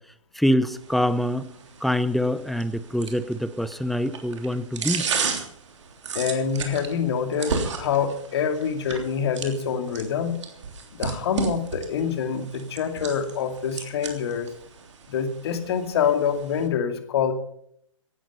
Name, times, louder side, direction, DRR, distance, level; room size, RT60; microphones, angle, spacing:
voice 1, 0.3-1.5 1.8-5.1, equal, ahead, 14 dB, 0.7 m, -25 dB
sound 1, 0.7-16.7, right 5 dB, 60° right, 3.3 m, -35 dB
voice 2, 6.1-10.4 10.9-14.5 15.1-17.3, left 7 dB, 50° left, 8 dB, 2.4 m, -26 dB
18.0 x 11.5 x 5.5 m, 0.69 s
figure-of-eight pair, 125°, 17 cm